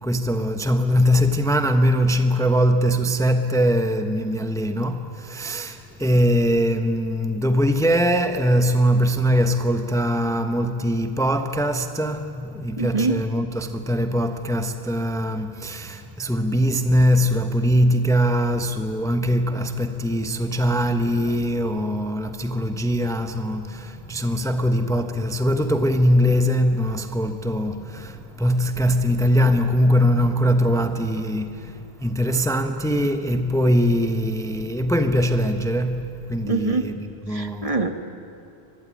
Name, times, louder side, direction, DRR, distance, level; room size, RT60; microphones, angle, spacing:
voice 1, 0.0-37.9, equal, 5° left, 1.0 m, -22 dB
voice 2, 12.8-13.1 36.5-36.9 37.3-37.9, right 3 dB, 35° right, 1.4 m, -24 dB
25.0 x 21.5 x 9.9 m
omnidirectional pair, 1.0 m